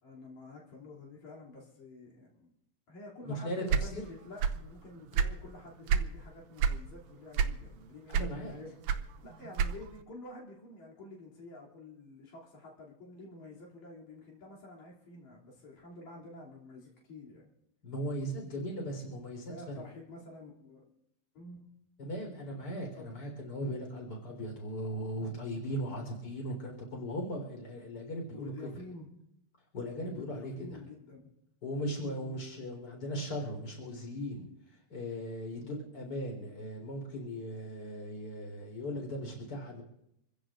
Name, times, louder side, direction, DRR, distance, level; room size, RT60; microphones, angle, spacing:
voice 1, 0.0-2.5 2.9-17.5 18.8-20.9 21.3-21.6 22.9-23.1 28.3-29.1 30.1-31.3 31.9-32.5 35.6-35.8, left 2 dB, 75° left, -4 dB, 4.4 m, -49 dB
voice 2, 3.2-4.1 8.1-8.6 17.8-19.5 22.0-28.5 29.7-30.5 31.6-34.5 34.9-39.8, equal, 35° left, 1 dB, 4.6 m, -38 dB
sound 1, 3.7-4.7 5.0-6.1 6.6-6.9 7.3-7.8 8.1-10.0, right 7 dB, 80° right, 2.1 m, -28 dB
27.0 x 15.5 x 2.6 m, 0.81 s
omnidirectional pair, 3.3 m